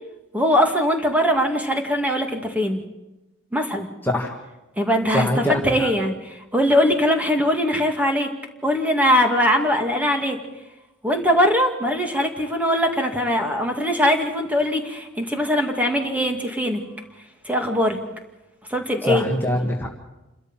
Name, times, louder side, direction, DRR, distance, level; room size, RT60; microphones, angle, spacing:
voice 1, 0.3-2.8 3.5-3.9 4.8-8.3 8.6-10.4 11.0-16.8 17.4-18.0 18.7-19.3, equal, 10° right, 3 dB, 2.3 m, -21 dB
voice 2, 4.0-4.3 5.1-5.9 19.1-19.9, left 1 dB, 10° left, 0 dB, 1.8 m, -23 dB
28.5 x 13.0 x 7.4 m, 1.0 s
head